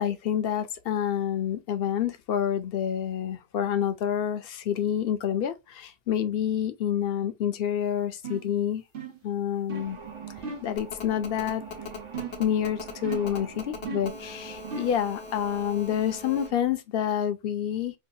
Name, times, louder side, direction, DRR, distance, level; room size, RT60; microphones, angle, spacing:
voice 1, 0.0-8.8 9.2-10.0 10.6-11.6 12.4-17.9, left 9 dB, 65° left, 0.8 m, -28 dB
sound 1, 8.2-8.5 8.9-9.3 9.7-10.0 10.4-10.8 12.1-12.5 13.0-13.4 13.8-14.2 14.7-15.0, right 6 dB, 60° right, 0.9 m, -37 dB
sound 2, 9.7-16.6, right 6 dB, 40° right, 0.4 m, -44 dB
Telephone, 10.8-16.5, left 5 dB, 90° left, 1.1 m, -40 dB
4.6 x 2.3 x 2.6 m
omnidirectional pair, 1.1 m